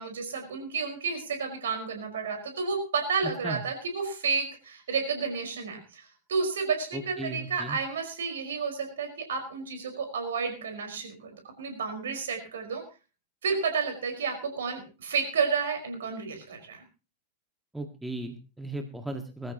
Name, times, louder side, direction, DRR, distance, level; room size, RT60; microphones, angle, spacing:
voice 1, 0.0-12.8 13.4-16.8, right 5 dB, 65° right, 5 dB, 5.0 m, -31 dB
voice 2, 6.9-7.8 17.7-19.5, right 1 dB, 5° right, 5 dB, 1.8 m, -36 dB
21.5 x 13.5 x 3.0 m, 0.34 s
figure-of-eight pair, 90°, 0 cm